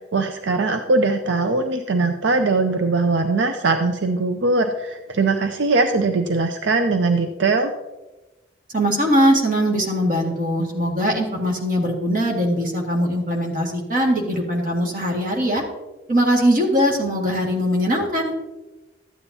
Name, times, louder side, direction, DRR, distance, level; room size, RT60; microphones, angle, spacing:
voice 1, 0.1-7.7, right 3 dB, 80° right, 6 dB, 0.5 m, -21 dB
voice 2, 8.7-15.6 16.1-18.3, equal, 45° right, -1 dB, 1.8 m, -21 dB
13.0 x 8.9 x 2.7 m, 1.1 s
head